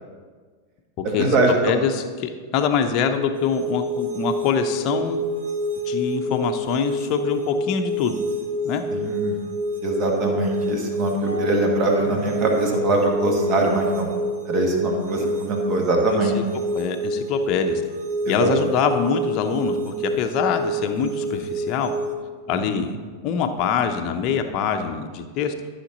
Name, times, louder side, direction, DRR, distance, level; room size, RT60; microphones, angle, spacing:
voice 1, 1.0-1.6 8.9-9.4 9.8-14.1 14.5-16.4 18.2-18.5 22.6-22.7, right 2 dB, 35° right, 1 dB, 1.8 m, -22 dB
voice 2, 1.6-5.2 5.9-8.2 8.6-8.8 15.2-15.3 16.1-16.4 16.7-17.8 18.3-21.9 22.5-23.0 23.2-25.5, left 7 dB, 40° left, 6 dB, 0.7 m, -24 dB
sound 1, 3.3-22.1, right 1 dB, 60° right, 1.1 m, -28 dB
sound 2, 11.3-15.9, right 1 dB, 85° right, 0.6 m, -35 dB
12.5 x 5.9 x 4.0 m, 1.5 s
figure-of-eight pair, 90°, 0 cm